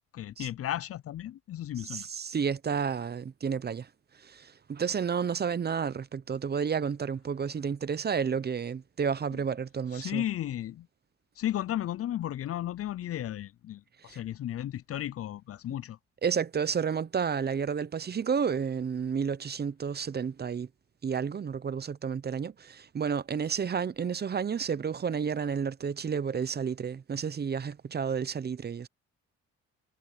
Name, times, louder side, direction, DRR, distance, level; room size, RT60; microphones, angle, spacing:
voice 1, 0.1-2.1 9.3-9.4 9.9-10.9 11.4-16.0, left 12 dB, 50° left, 0.5 m, -34 dB
voice 2, 1.9-3.9 4.2-10.2 14.1-14.2 16.2-20.7 21.0-28.9, right 6 dB, 35° right, 0.7 m, -31 dB
cardioid pair, 90°, 30 cm